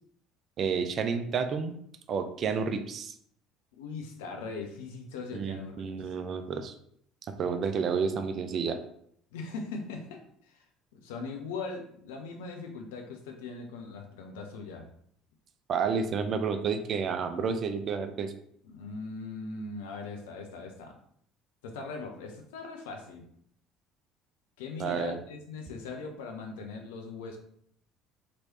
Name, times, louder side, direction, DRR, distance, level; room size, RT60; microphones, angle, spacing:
voice 1, 0.6-1.8 2.1-3.1 5.3-6.7 7.4-8.8 15.7-18.3 24.8-25.2, right 5 dB, 45° right, 8 dB, 0.4 m, -30 dB
voice 2, 3.8-6.1 9.3-10.7 10.9-14.9 18.6-21.0 21.6-23.3 24.6-27.4, left 4 dB, 70° left, 3 dB, 0.5 m, -40 dB
3.0 x 3.0 x 2.8 m, 0.67 s
figure-of-eight pair, 60°, 0 cm